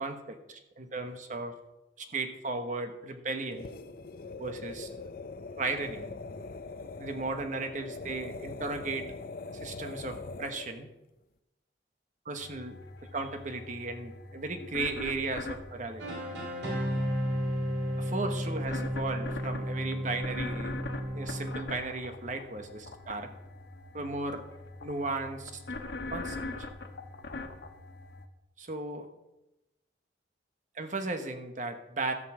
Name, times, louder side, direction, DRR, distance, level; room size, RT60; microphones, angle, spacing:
voice 1, 0.0-1.5 2.0-3.7 4.4-4.9 5.6-6.1 7.0-9.1 9.6-10.9 12.2-12.8 13.1-16.2 18.0-20.7 21.1-23.3 23.9-24.4 24.8-25.6 26.1-26.7 28.6-29.1 30.7-32.1, right 3 dB, 45° right, 6 dB, 1.2 m, -35 dB
sound 1, 3.5-10.8, left 3 dB, 55° left, 0.6 m, -42 dB
sound 2, 12.4-28.3, left 2 dB, 75° left, 1.1 m, -43 dB
sound 3, 16.0-21.9, equal, 90° right, 2.7 m, -33 dB
13.5 x 5.5 x 7.5 m, 0.97 s
head